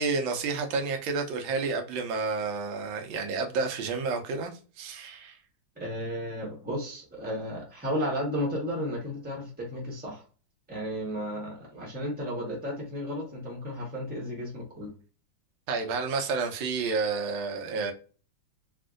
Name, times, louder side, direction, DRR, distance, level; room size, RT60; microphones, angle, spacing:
voice 1, 0.0-5.4 15.7-17.9, right 4 dB, 85° right, 1.4 m, -30 dB
voice 2, 5.8-10.2 10.7-14.9, equal, 10° right, 0.7 m, -33 dB
3.6 x 2.4 x 2.4 m
omnidirectional pair, 2.1 m